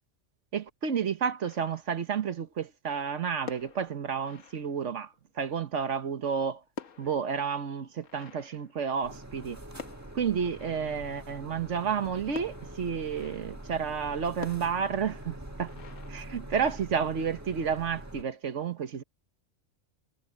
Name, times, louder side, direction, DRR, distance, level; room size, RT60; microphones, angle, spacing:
voice 1, 0.5-6.6 7.0-9.6 10.1-15.7 16.1-19.0, right 7 dB, 70° right, 1.4 m, -31 dB
sound 1, 1.5-2.2 3.3-5.2 6.2-9.4 9.8-11.3 12.3-13.7 14.4-16.9, left 6 dB, 85° left, 1.6 m, -48 dB
sound 2, 9.0-18.2, right 1 dB, 15° right, 1.5 m, -44 dB
omnidirectional pair, 1.3 m